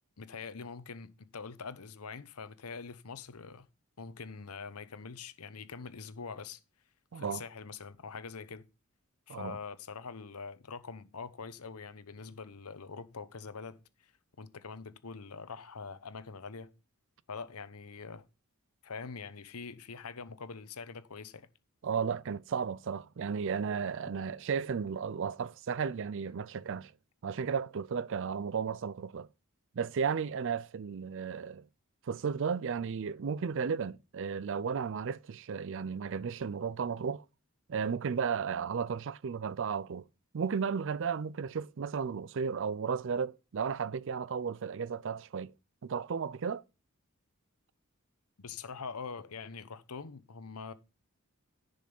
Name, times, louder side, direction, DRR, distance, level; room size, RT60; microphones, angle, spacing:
voice 1, 0.2-3.7 4.0-6.6 7.1-8.6 9.3-14.1 14.4-16.7 17.3-18.3 18.8-21.5 48.4-50.7, left 5 dB, 80° left, 0.9 m, -44 dB
voice 2, 7.1-7.4 9.3-9.6 21.8-26.9 27.2-29.3 29.8-31.6 32.1-37.2 37.7-40.0 40.3-45.5 45.8-46.6, right 6 dB, 60° right, 0.4 m, -34 dB
10.5 x 5.3 x 5.4 m
head